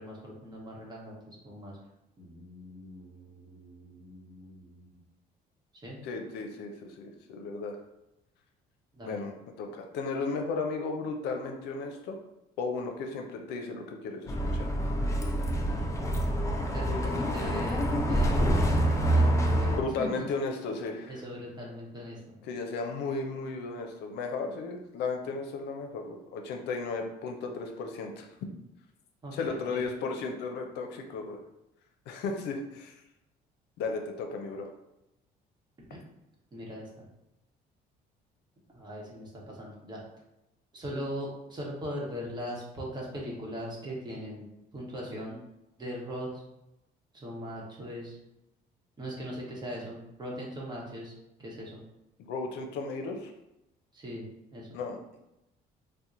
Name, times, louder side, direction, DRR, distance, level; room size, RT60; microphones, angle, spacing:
voice 1, 0.0-1.8 2.2-5.0 5.7-6.0 8.9-9.2 16.7-18.6 19.1-20.2 21.1-22.3 29.2-29.9 35.8-36.0 36.5-37.0 38.7-40.0 40.7-44.4 44.7-45.4 45.8-46.4 47.1-48.2 49.0-51.1 51.4-51.8 53.9-54.3 54.5-54.7, equal, 25° right, -3 dB, 1.0 m, -40 dB
voice 2, 6.0-7.8 9.1-12.2 12.6-14.7 19.7-21.1 22.5-28.3 29.3-31.4 32.1-33.0 33.8-34.7 52.2-53.3 54.7-55.2, left 4 dB, 80° left, 3 dB, 0.5 m, -35 dB
Bus, 14.3-19.8, right 1 dB, 20° left, 0.4 m, -26 dB
2.8 x 2.1 x 3.6 m, 0.90 s
cardioid pair, 110°, 17 cm